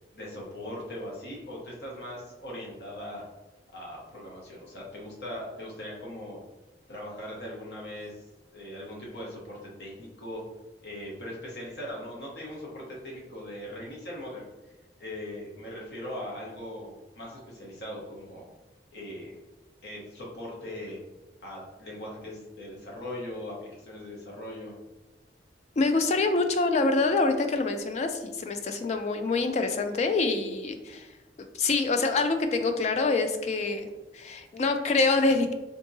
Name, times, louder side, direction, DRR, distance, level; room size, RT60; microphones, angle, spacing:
voice 1, 0.1-3.2 3.7-6.4 6.9-8.1 8.5-10.4 10.8-14.4 15.0-18.4 18.9-19.3 19.8-21.0 21.4-24.7, left 1 dB, 70° left, -3 dB, 0.9 m, -40 dB
voice 2, 25.8-31.1 31.4-33.9 34.1-35.5, left 3 dB, 40° left, 6 dB, 0.3 m, -26 dB
3.5 x 2.7 x 2.6 m, 1.1 s
head